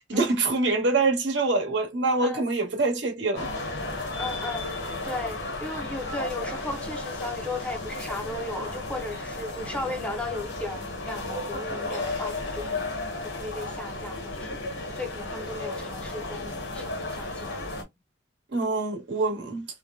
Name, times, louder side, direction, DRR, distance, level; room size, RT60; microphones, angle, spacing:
voice 1, 0.1-3.5 18.5-19.7, right 3 dB, 75° right, 1.0 m, -25 dB
sound 1, 3.4-17.8, left 2 dB, 85° left, 0.8 m, -34 dB
voice 2, 4.2-4.7 5.0-12.9 13.2-17.9, left 2 dB, 5° left, 0.4 m, -36 dB
3.2 x 2.0 x 2.3 m
head